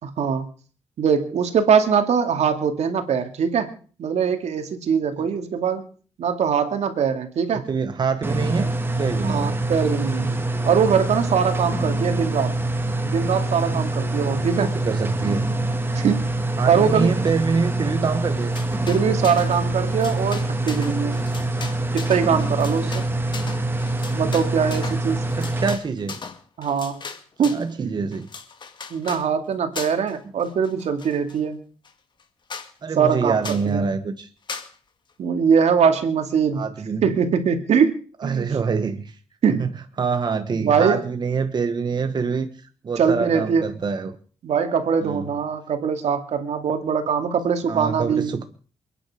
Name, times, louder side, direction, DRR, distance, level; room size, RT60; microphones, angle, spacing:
voice 1, 0.0-0.5 1.0-3.7 4.0-5.9 6.2-7.7 9.2-10.3 10.6-12.6 13.0-14.7 15.9-16.3 16.7-17.1 18.9-21.2 21.9-23.0 24.1-25.3 26.6-27.0 27.4-27.9 28.9-31.6 33.0-33.8 35.2-36.7 37.0-38.5 39.4-39.7 40.5-41.0 43.0-43.7 44.4-48.3, right 7 dB, 75° right, 2.4 m, -22 dB
voice 2, 7.5-8.7 9.0-9.6 10.3-10.5 14.6-15.4 16.6-18.6 25.4-26.2 27.5-28.3 32.8-34.3 36.5-37.1 38.2-39.1 39.6-39.7 40.0-44.2 45.0-45.4 47.7-48.4, right 5 dB, 40° right, 1.3 m, -25 dB
sound 1, 8.2-25.7, right 2 dB, 20° right, 1.9 m, -25 dB
sound 2, 18.3-19.6 19.9-27.7 28.1-29.3 29.7-30.1 30.4-31.4 31.8-31.9 32.2-32.3 32.5-32.7 33.4-33.7 34.5-34.7, left 5 dB, 40° left, 2.2 m, -37 dB
28.5 x 10.0 x 5.0 m
wide cardioid pair, 135°, 12 cm